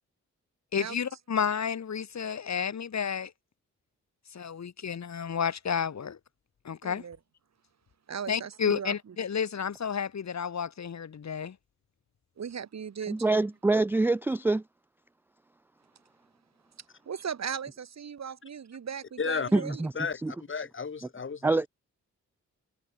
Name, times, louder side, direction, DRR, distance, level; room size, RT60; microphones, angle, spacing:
voice 1, 0.7-3.3 4.3-6.2 6.6-7.0 8.3-11.6, left 7 dB, 60° left, 2.9 m, -31 dB
voice 2, 6.8-7.2 8.1-9.2 12.4-13.2 17.1-19.8, right 7 dB, 60° right, 1.9 m, -37 dB
voice 3, 13.1-14.6 19.5-19.9 20.2-20.3 21.4-21.7, right 2 dB, 5° right, 0.3 m, -25 dB
voice 4, 19.2-19.6 19.9-21.6, left 5 dB, 40° left, 1.4 m, -33 dB
cardioid pair, 80°, 31 cm